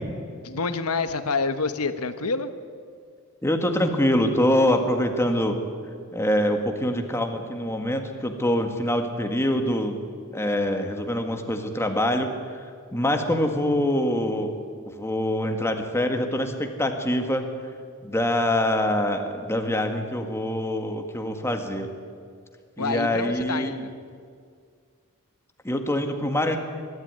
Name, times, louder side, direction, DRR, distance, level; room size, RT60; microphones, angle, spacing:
voice 1, 0.3-2.5 22.8-23.9, left 4 dB, 85° left, 10 dB, 1.3 m, -27 dB
voice 2, 3.4-5.6 6.1-10.0 10.3-12.6 12.9-14.6 15.0-17.4 18.0-21.9 22.8-23.7 25.6-26.6, left 1 dB, 10° left, 5 dB, 1.8 m, -24 dB
22.5 x 12.5 x 9.7 m, 2.1 s
head